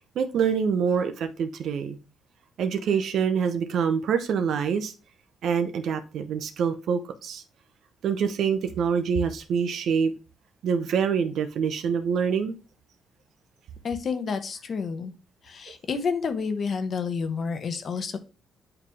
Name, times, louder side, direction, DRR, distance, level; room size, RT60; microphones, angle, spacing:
voice 1, 0.2-2.0 2.6-4.9 5.4-7.4 8.0-10.1 10.6-12.5, right 6 dB, 70° right, 0.7 m, -25 dB
voice 2, 13.8-15.1 15.5-18.2, left 5 dB, 50° left, 1.0 m, -29 dB
8.9 x 3.3 x 3.4 m
cardioid pair, 90°, 0 cm